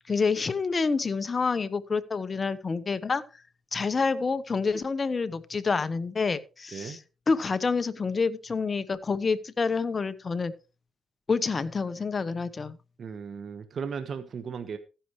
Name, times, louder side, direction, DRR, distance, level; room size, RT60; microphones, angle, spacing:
voice 1, 0.1-3.2 3.7-7.0 7.3-10.5 11.3-12.8, left 4 dB, 35° left, 1.1 m, -28 dB
voice 2, 13.0-14.8, right 6 dB, 50° right, 1.3 m, -36 dB
15.0 x 10.0 x 3.2 m
cardioid pair, 90°, 0 cm